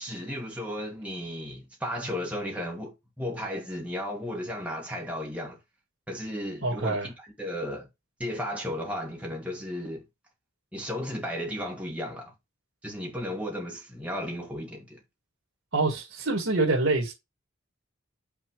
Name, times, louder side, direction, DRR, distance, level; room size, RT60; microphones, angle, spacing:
voice 1, 0.0-5.6 6.1-7.9 8.2-10.0 10.7-12.3 12.8-15.0, equal, 5° right, 2.2 m, -34 dB
voice 2, 6.6-7.1 15.7-17.1, right 2 dB, 70° right, 2.0 m, -25 dB
6.0 x 4.1 x 4.9 m
head